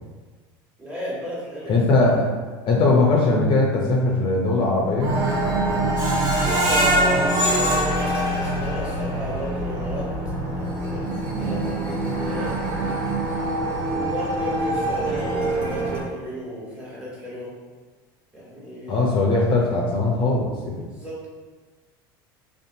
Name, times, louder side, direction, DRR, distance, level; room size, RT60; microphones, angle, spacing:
voice 1, 0.8-1.8 6.4-10.1 10.5-13.0 13.9-17.5 18.3-19.1 20.8-21.3, equal, 10° right, -8 dB, 1.2 m, -33 dB
voice 2, 1.7-2.3 2.7-5.2 18.9-20.9, left 2 dB, 45° left, -2 dB, 0.5 m, -20 dB
sound 1, 5.0-16.0, right 2 dB, 55° right, 0.9 m, -25 dB
Screech, 6.0-8.9 9.4-9.5 9.9-10.0, right 1 dB, 35° right, 1.2 m, -24 dB
2.6 x 2.3 x 2.6 m, 1.4 s
supercardioid pair, 95°, 12 cm